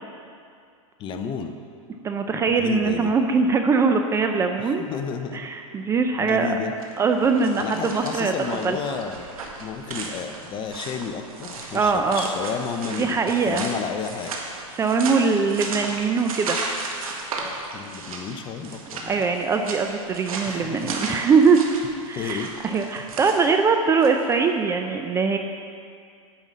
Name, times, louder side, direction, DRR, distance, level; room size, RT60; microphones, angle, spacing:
voice 1, 1.0-1.6 2.5-3.1 4.6-5.5 6.2-6.7 7.6-9.3 9.6-13.2 13.4-14.3 17.7-19.2 20.4-21.0 22.2-22.5, left 6 dB, 25° left, 7 dB, 0.7 m, -32 dB
voice 2, 2.0-4.8 5.3-6.5 7.0-8.3 8.6-8.8 11.7-12.3 13.0-13.6 14.7-16.6 19.0-21.7 22.1-25.4, right 5 dB, 15° right, 5 dB, 0.5 m, -22 dB
sound 1, 6.7-24.3, right 3 dB, 90° right, 1.7 m, -35 dB
10.5 x 5.5 x 7.4 m, 2.3 s
hypercardioid pair, 135°, 18 cm